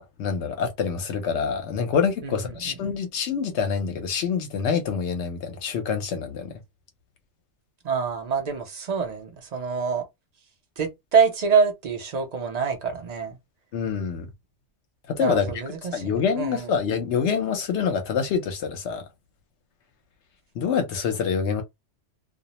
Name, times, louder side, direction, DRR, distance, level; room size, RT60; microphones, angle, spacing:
voice 1, 0.0-6.5 13.7-14.3 15.1-15.5 15.9-19.0 20.5-21.6, left 6 dB, 70° left, 0.9 m, -26 dB
voice 2, 2.2-3.0 7.8-10.0 10.8-13.4 15.2-16.7, right 6 dB, 45° right, 0.5 m, -26 dB
2.4 x 2.0 x 2.8 m
omnidirectional pair, 1.2 m